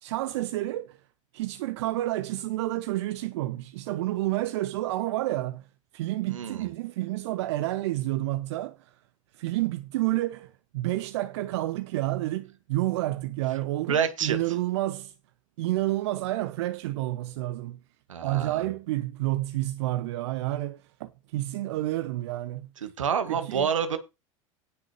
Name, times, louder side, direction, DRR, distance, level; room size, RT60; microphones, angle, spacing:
voice 1, 0.0-1.0 1.3-5.6 5.9-8.9 9.3-15.1 15.6-17.8 18.2-22.7 23.3-23.7, right 16 dB, 60° right, 0.8 m, -30 dB
voice 2, 6.3-6.7 13.9-14.4 18.1-18.6 22.8-24.0, right 7 dB, 75° right, 1.6 m, -28 dB
18.5 x 6.3 x 3.0 m
figure-of-eight pair, 75°, 17 cm